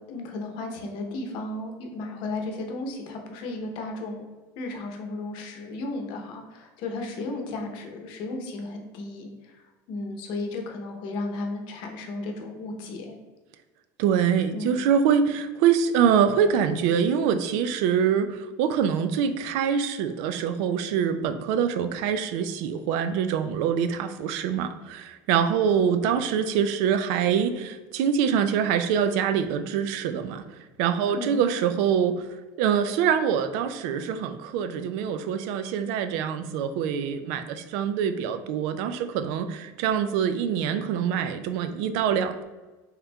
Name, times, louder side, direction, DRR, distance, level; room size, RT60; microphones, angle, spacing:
voice 1, 0.0-4.3 4.6-13.2 14.5-14.8 31.1-31.4, left 2 dB, 60° left, 2 dB, 0.8 m, -34 dB
voice 2, 14.0-30.4 30.8-32.2 32.6-42.4, right 7 dB, 70° right, 10 dB, 0.4 m, -24 dB
4.2 x 3.7 x 2.3 m, 1.2 s
supercardioid pair, 135°, 9 cm